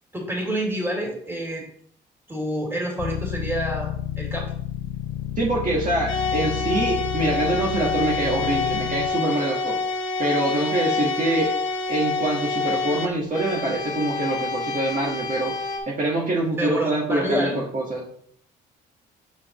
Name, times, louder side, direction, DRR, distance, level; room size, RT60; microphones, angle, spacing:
voice 1, 0.1-1.6 2.3-4.5 16.6-17.6, right 1 dB, 10° right, -1 dB, 2.7 m, -28 dB
sound 1, 3.0-9.1, left 10 dB, 50° left, 0.6 m, -31 dB
voice 2, 5.4-9.8 10.2-11.5 11.9-18.0, right 2 dB, 40° right, -4 dB, 1.5 m, -25 dB
sound 2, 6.1-15.8, left 3 dB, 80° left, 1.4 m, -27 dB
7.1 x 4.9 x 3.0 m, 0.62 s
cardioid pair, 90°, 20 cm